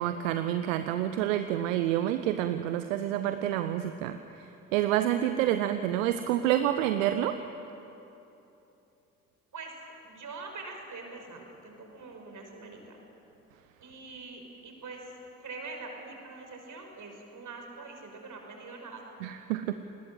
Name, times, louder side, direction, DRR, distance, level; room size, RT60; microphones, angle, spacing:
voice 1, 0.0-7.4 19.2-19.7, right 12 dB, 75° right, 10 dB, 0.8 m, -28 dB
voice 2, 10.0-13.0 13.8-15.0 15.4-19.0, right 3 dB, 50° right, 3 dB, 5.5 m, -44 dB
29.5 x 20.5 x 7.8 m, 3.0 s
figure-of-eight pair, 40°, 39 cm